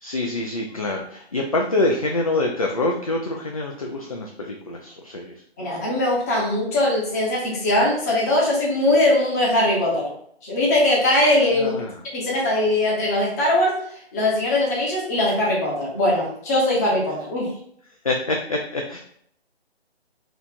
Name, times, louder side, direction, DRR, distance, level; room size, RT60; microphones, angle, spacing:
voice 1, 0.0-5.3 11.5-11.9 18.0-19.0, left 2 dB, 35° left, 1 dB, 0.4 m, -25 dB
voice 2, 5.6-10.1 10.4-11.7 12.1-13.8 14.1-17.5, left 1 dB, 15° left, -3 dB, 0.9 m, -21 dB
4.5 x 2.4 x 4.2 m, 0.67 s
figure-of-eight pair, 140°, 32 cm